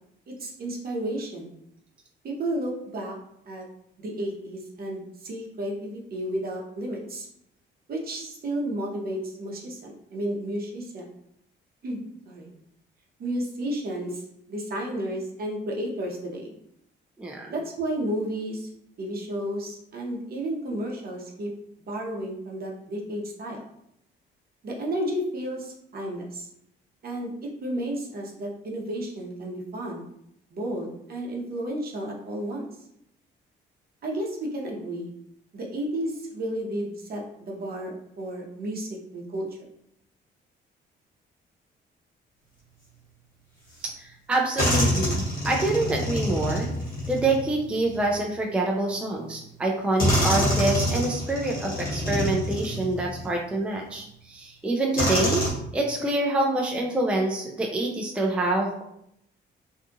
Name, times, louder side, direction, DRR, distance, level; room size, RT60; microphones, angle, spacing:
voice 1, 0.3-1.5 2.2-3.2 3.5-3.7 4.0-7.3 7.9-11.0 11.8-12.5 13.2-14.2 14.5-16.5 17.5-18.7 19.0-21.5 21.9-23.6 24.6-26.5 27.0-27.3 27.6-30.1 30.5-32.6 34.0-35.1 35.5-39.5, right 1 dB, 50° right, -1 dB, 0.8 m, -32 dB
voice 2, 17.2-17.5 44.0-46.7 47.1-55.5 55.7-58.8, right 2 dB, 5° right, 0 dB, 0.4 m, -26 dB
sound 1, 43.8-43.9 44.6-48.2 49.2-49.3 50.0-53.3 53.9-54.0 55.0-55.5, equal, 45° left, 1.3 m, -26 dB
2.7 x 2.3 x 2.6 m, 0.74 s
cardioid pair, 90°, 20 cm